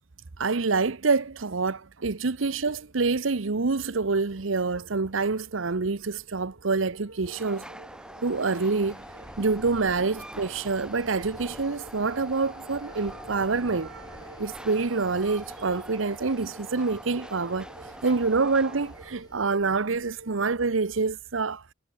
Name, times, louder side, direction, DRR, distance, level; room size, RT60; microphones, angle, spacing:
voice 1, 0.4-7.6 8.2-9.0 9.4-13.9 14.4-17.7 18.0-21.6, right 4 dB, 90° right, 0.9 m, -26 dB
sound 1, 2.5-21.0, right 2 dB, 75° right, 2.9 m, -50 dB
Train, 7.2-19.2, right 1 dB, 5° right, 3.2 m, -44 dB
sound 2, 8.1-19.9, left 1 dB, 20° left, 3.0 m, -51 dB
head